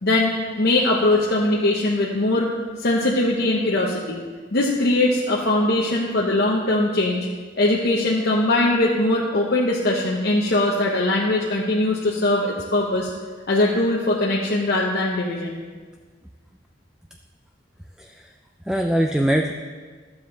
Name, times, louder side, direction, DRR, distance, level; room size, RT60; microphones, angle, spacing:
voice 1, 0.0-2.5 2.8-4.2 4.5-7.3 7.6-13.1 13.5-15.6, left 2 dB, 55° left, -3 dB, 0.9 m, -21 dB
voice 2, 18.0-18.3 18.7-19.5, right 1 dB, 5° right, 3 dB, 0.3 m, -22 dB
12.0 x 7.2 x 3.8 m, 1.5 s
head